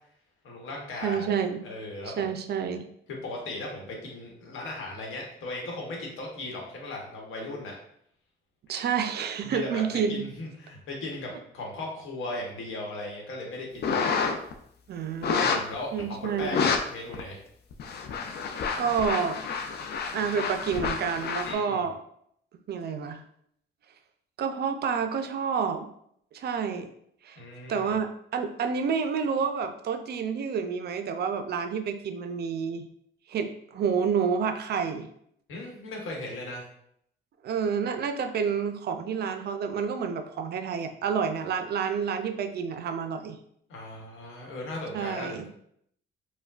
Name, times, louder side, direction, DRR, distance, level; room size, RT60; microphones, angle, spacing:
voice 1, 0.4-1.4 1.6-2.4 3.1-7.7 8.7-8.8 9.4-9.8 10.1-14.3 15.4-17.4 21.4-21.8 27.4-27.9 35.5-36.7 43.7-45.5, left 2 dB, 85° left, -1 dB, 1.0 m, -37 dB
voice 2, 1.0-1.6 2.1-2.9 8.7-10.3 14.9-15.5 15.9-16.6 18.8-19.4 20.1-22.0 22.7-23.2 24.4-25.9 26.3-26.9 27.2-27.4 27.7-32.9 33.3-35.1 37.4-43.4 44.9-45.5, right 6 dB, 55° right, 8 dB, 0.4 m, -29 dB
sound 1, 13.8-14.5 15.2-15.7 16.4-16.8 17.1-17.2 17.7-21.5, left 5 dB, 55° left, 0.5 m, -29 dB
4.5 x 2.2 x 2.4 m, 0.70 s
cardioid pair, 90°, 20 cm